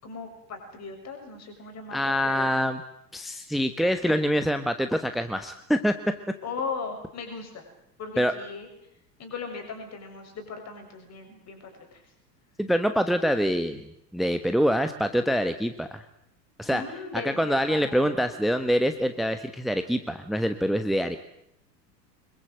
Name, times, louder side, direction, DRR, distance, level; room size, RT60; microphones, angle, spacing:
voice 1, 0.0-2.5 6.4-7.7 8.0-8.7 9.2-12.0 16.7-18.1, left 5 dB, 30° left, 4 dB, 6.9 m, -38 dB
voice 2, 1.9-2.8 3.1-5.9 8.2-8.3 12.6-13.8 14.1-16.0 16.6-16.8 17.1-21.2, equal, ahead, 9 dB, 1.2 m, -25 dB
25.5 x 22.0 x 7.8 m, 0.76 s
figure-of-eight pair, 80°, 50 cm